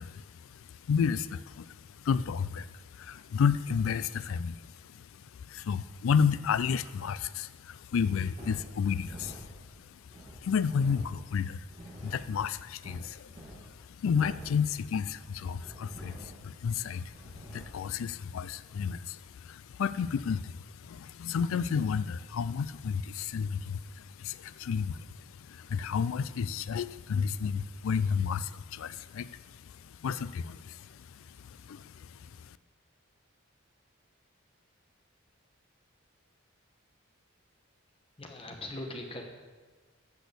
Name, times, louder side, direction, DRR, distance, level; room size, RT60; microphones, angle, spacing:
voice 1, 0.0-5.1 5.5-9.5 9.9-10.0 10.3-32.5, left 6 dB, 70° left, 16 dB, 0.3 m, -32 dB
sound 1, 7.9-17.8, equal, 30° right, 1.8 m, -49 dB
voice 2, 38.2-39.2, left 1 dB, 25° left, 2 dB, 1.0 m, -40 dB
8.2 x 6.1 x 6.8 m, 1.4 s
head